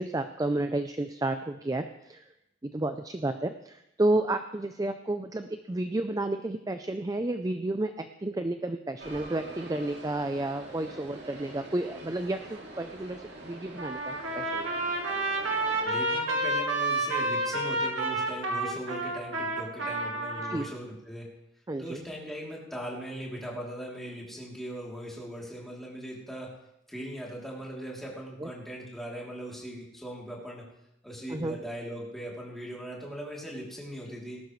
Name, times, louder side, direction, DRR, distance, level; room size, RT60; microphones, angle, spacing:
voice 1, 0.0-2.3 2.6-14.7 20.4-20.7 21.7-22.0 28.4-28.5 31.3-31.6, right 2 dB, 20° right, 8 dB, 0.4 m, -31 dB
sound 1, 9.0-15.9, right 2 dB, 60° right, 2.9 m, -45 dB
Trumpet, 13.8-20.6, right 2 dB, 80° right, 2.0 m, -30 dB
voice 2, 15.6-21.3 21.8-26.5 26.9-30.6 31.0-34.4, equal, ahead, -4 dB, 3.0 m, -39 dB
19.5 x 11.5 x 3.2 m, 0.81 s
head